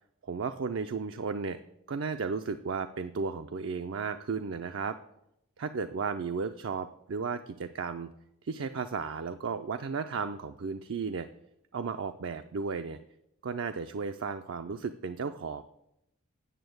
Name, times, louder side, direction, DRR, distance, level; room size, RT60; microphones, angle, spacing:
voice 1, 0.2-1.6 1.9-5.0 5.6-8.1 8.4-11.3 11.7-13.0 13.4-15.6, right 5 dB, 60° right, 7 dB, 0.4 m, -34 dB
9.0 x 7.1 x 7.8 m, 0.84 s
head